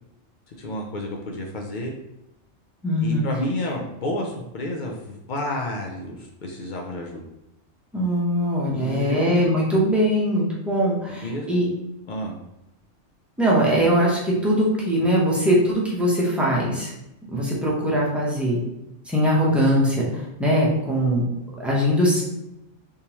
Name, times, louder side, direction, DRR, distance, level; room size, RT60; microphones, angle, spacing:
voice 1, 0.5-1.9 3.0-7.2 8.6-9.4 11.2-11.6 12.1-12.4, left 1 dB, 70° left, 0 dB, 0.4 m, -30 dB
voice 2, 2.8-3.2 7.9-11.7 13.4-16.9 17.3-18.6 19.1-21.3 21.6-22.2, equal, ahead, -5 dB, 0.6 m, -21 dB
3.6 x 2.7 x 2.9 m, 0.89 s
omnidirectional pair, 1.3 m